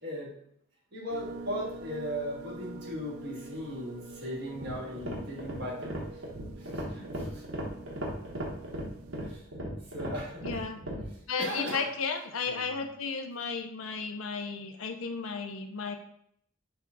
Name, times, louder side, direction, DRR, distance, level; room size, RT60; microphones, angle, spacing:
voice 1, 0.0-0.3 0.9-6.0 6.6-7.4 9.2-9.4 9.9-10.6 11.1-11.8 12.4-12.8, equal, 55° right, -4 dB, 1.6 m, -38 dB
sound 1, 1.1-9.4, right 3 dB, 85° right, 0.3 m, -46 dB
sound 2, 4.5-11.1, equal, 70° right, 1.1 m, -37 dB
voice 2, 10.4-10.8 11.3-16.0, left 5 dB, 80° left, 7 dB, 0.5 m, -34 dB
5.7 x 2.3 x 3.8 m, 0.69 s
head